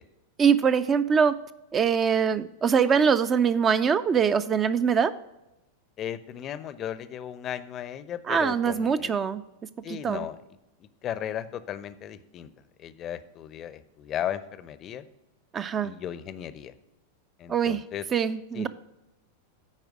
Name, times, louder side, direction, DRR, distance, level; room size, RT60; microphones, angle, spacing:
voice 1, 0.4-1.3 1.7-5.1 8.3-9.4 9.9-10.3 15.5-15.9 17.5-17.8 18.1-18.7, right 6 dB, 25° right, 13 dB, 0.3 m, -23 dB
voice 2, 6.0-9.1 9.8-10.4 10.8-12.5 12.8-15.0 15.8-16.7 17.4-18.0 18.5-18.7, left 10 dB, 30° left, 15 dB, 0.5 m, -36 dB
9.7 x 4.6 x 6.2 m, 0.95 s
figure-of-eight pair, 90°, 0 cm